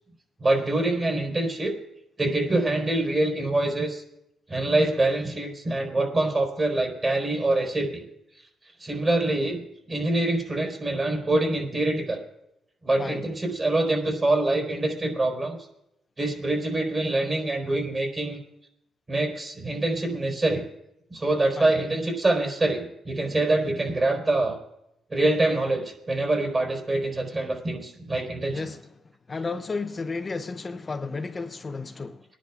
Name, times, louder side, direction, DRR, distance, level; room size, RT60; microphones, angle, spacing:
voice 1, 0.4-1.8 2.2-4.0 4.5-8.0 8.8-9.6 9.9-12.2 12.8-15.6 16.2-18.4 19.1-20.6 21.1-24.6 25.1-28.6, right 2 dB, 30° right, 4.2 m, -25 dB
voice 2, 28.5-28.8 29.3-32.2, left 4 dB, 30° left, 0.5 m, -32 dB
23.5 x 10.5 x 2.4 m
cardioid pair, 90°, 0 cm